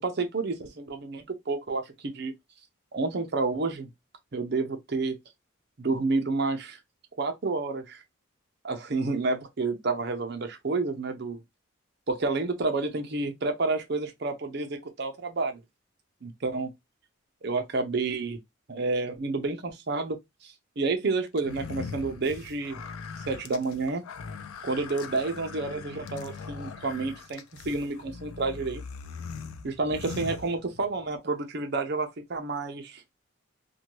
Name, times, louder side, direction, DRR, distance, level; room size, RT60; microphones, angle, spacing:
voice 1, 0.0-2.3 2.9-3.9 4.3-5.2 5.8-6.8 7.2-8.0 8.6-11.4 12.1-15.6 16.2-16.7 17.4-18.4 18.7-20.2 20.4-22.8 23.3-24.0 24.6-28.8 29.6-33.0, right 3 dB, 50° right, 0.6 m, -30 dB
sound 1, 21.4-31.1, left 5 dB, 85° left, 0.4 m, -41 dB
2.6 x 2.2 x 3.0 m
head